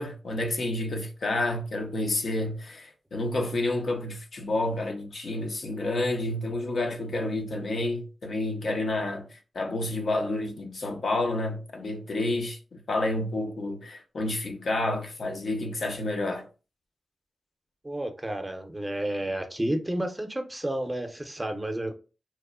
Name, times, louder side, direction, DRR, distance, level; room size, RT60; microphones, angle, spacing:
voice 1, 0.0-16.5, left 2 dB, 65° left, 0.5 m, -29 dB
voice 2, 17.8-21.9, right 1 dB, 20° right, 0.6 m, -31 dB
2.9 x 2.0 x 2.3 m
supercardioid pair, 40°, 0 cm